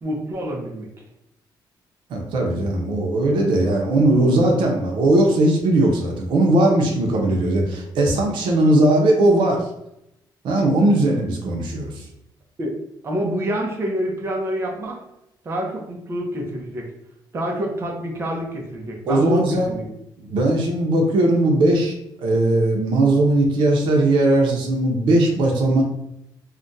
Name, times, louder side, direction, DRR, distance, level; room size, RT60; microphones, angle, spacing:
voice 1, 0.0-0.9 12.6-12.8 13.0-15.0 15.4-16.9 17.3-19.9, equal, 30° right, 0 dB, 0.6 m, -27 dB
voice 2, 2.1-9.7 10.4-12.0 19.1-19.7 20.2-25.8, right 1 dB, 75° right, 1 dB, 0.6 m, -18 dB
2.4 x 2.1 x 3.9 m, 0.82 s
cardioid pair, 165°, 8 cm